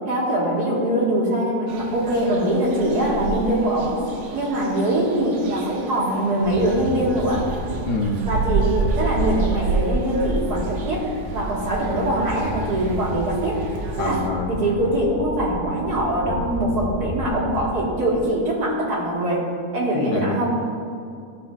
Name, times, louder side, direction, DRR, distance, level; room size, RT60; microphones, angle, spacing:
voice 1, 0.1-4.0 4.3-7.5 8.2-13.7 14.0-19.5 19.7-20.5, right 1 dB, 90° right, -5 dB, 2.2 m, -23 dB
sound 1, 1.7-14.3, right 3 dB, 60° right, 0.9 m, -29 dB
sound 2, 6.4-17.7, equal, 35° left, 2.1 m, -33 dB
voice 2, 7.9-8.4 14.0-14.6 19.9-20.3, left 2 dB, 85° left, 2 dB, 1.4 m, -26 dB
14.5 x 5.8 x 2.3 m, 2.3 s
omnidirectional pair, 1.7 m